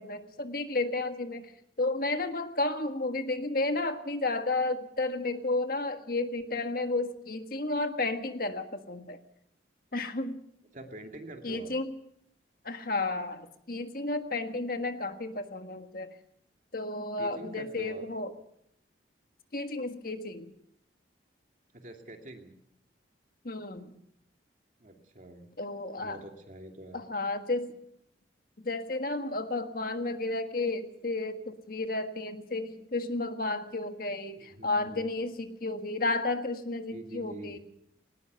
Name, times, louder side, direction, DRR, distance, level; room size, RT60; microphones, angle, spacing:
voice 1, 0.0-1.5 1.8-9.2 9.9-10.4 11.4-11.9 12.6-16.1 16.7-18.3 19.5-20.5 23.4-24.0 25.6-26.2 26.9-27.8 28.6-37.6, left 2 dB, 50° left, 7 dB, 1.6 m, -32 dB
voice 2, 10.7-11.7 17.2-18.1 21.7-22.5 24.8-25.5 26.0-27.0 34.4-35.1 36.9-37.6, right 1 dB, 40° right, 3 dB, 2.5 m, -46 dB
20.0 x 19.0 x 6.9 m, 0.74 s
head